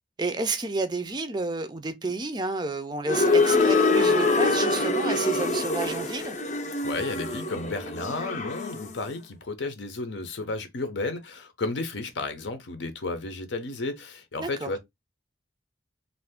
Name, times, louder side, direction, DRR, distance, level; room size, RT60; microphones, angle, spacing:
voice 1, 0.2-6.4 14.4-14.7, right 3 dB, 25° right, 0.4 m, -31 dB
sound 1, 3.1-9.0, left 3 dB, 40° left, 0.5 m, -24 dB
voice 2, 6.8-14.8, left 3 dB, 80° left, 0.7 m, -33 dB
2.6 x 2.4 x 3.4 m
head